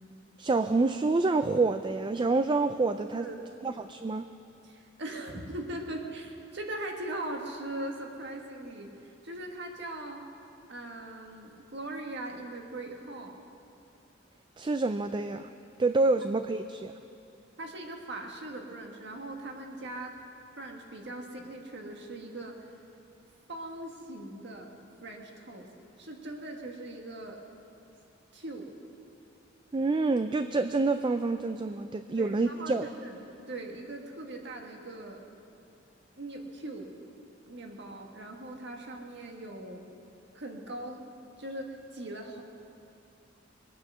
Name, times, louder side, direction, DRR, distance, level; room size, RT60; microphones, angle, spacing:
voice 1, 0.4-3.3 3.6-4.3 14.6-15.5 15.8-16.9 29.7-32.9, right 3 dB, 25° right, 9 dB, 0.3 m, -27 dB
voice 2, 4.6-10.2 10.7-13.4 17.6-20.2 20.6-22.6 23.5-25.7 26.0-27.4 28.3-28.7 32.2-35.3 36.2-36.9 37.5-39.8 40.3-41.1 41.4-42.4, right 1 dB, 60° right, 2 dB, 1.7 m, -40 dB
22.0 x 9.3 x 6.2 m, 2.7 s
head